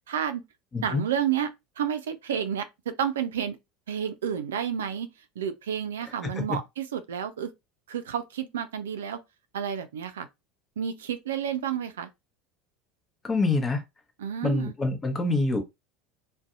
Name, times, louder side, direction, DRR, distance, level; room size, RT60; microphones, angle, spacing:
voice 1, 0.1-0.4 0.8-1.5 1.8-3.6 3.9-5.1 5.4-7.5 7.9-9.2 9.5-10.3 10.8-12.1 14.2-14.7, right 8 dB, 80° right, 0.3 m, -30 dB
voice 2, 13.2-13.8 14.4-15.6, left 3 dB, 25° left, 0.8 m, -25 dB
2.6 x 2.1 x 2.5 m
hypercardioid pair, 80°, 0 cm